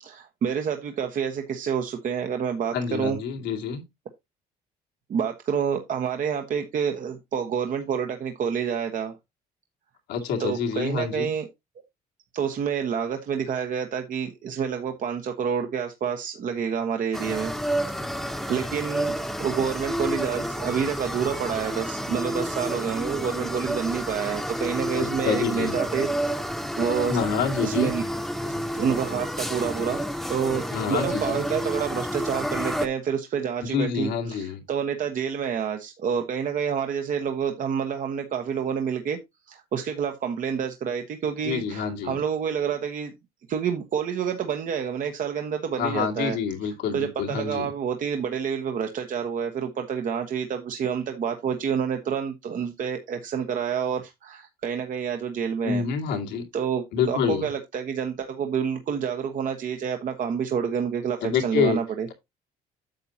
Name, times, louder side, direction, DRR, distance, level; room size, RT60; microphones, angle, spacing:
voice 1, 0.0-3.2 5.1-9.1 10.4-11.5 12.3-17.5 18.5-26.1 26.8-27.2 27.6-28.1 28.4-30.6 30.9-39.2 39.5-43.1 43.5-46.4 46.6-56.2 56.5-62.1, right 7 dB, 55° right, 1.1 m, -28 dB
voice 2, 2.7-3.8 10.1-11.3 25.2-25.8 27.1-27.9 30.7-31.4 33.6-34.6 41.4-42.2 45.8-47.7 55.6-56.4 56.9-57.5 61.2-61.8, left 6 dB, 90° left, 2.3 m, -27 dB
sound 1, 17.1-32.9, equal, ahead, 1.0 m, -30 dB
9.1 x 6.9 x 2.8 m
cardioid pair, 110°, 17 cm